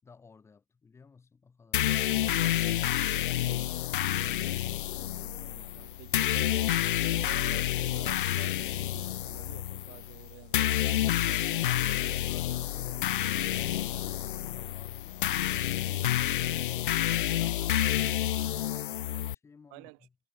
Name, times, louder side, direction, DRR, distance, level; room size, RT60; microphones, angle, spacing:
voice 1, 0.0-2.4 11.0-16.5 16.9-20.1, left 5 dB, 10° left, 4.5 m, -56 dB
sound 1, 1.7-19.3, left 13 dB, 60° left, 0.6 m, -29 dB
voice 2, 2.0-2.6 4.9-6.8 7.1-11.4 19.7-20.1, right 40 dB or more, 35° right, 3.2 m, -51 dB
hypercardioid pair, 145°, 29 cm